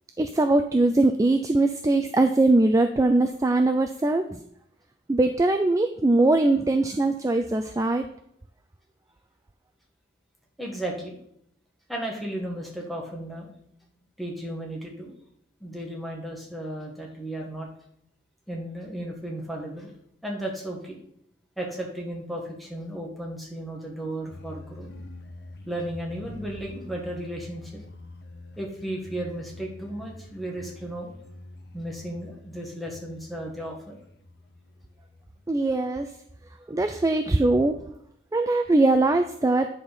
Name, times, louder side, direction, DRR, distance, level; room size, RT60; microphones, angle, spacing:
voice 1, 0.2-4.3 5.1-8.1 35.5-36.1 36.7-37.8 38.3-39.7, right 2 dB, 20° right, 6 dB, 0.3 m, -21 dB
voice 2, 10.6-11.2 11.9-13.5 14.2-15.1 15.6-17.7 18.5-19.9 20.2-21.0 21.6-24.9 25.6-27.8 28.6-31.1 31.7-33.9, right 1 dB, ahead, -1 dB, 1.4 m, -34 dB
sound 1, 24.3-36.2, left 2 dB, 60° left, 0.8 m, -46 dB
9.8 x 4.3 x 5.1 m, 0.72 s
head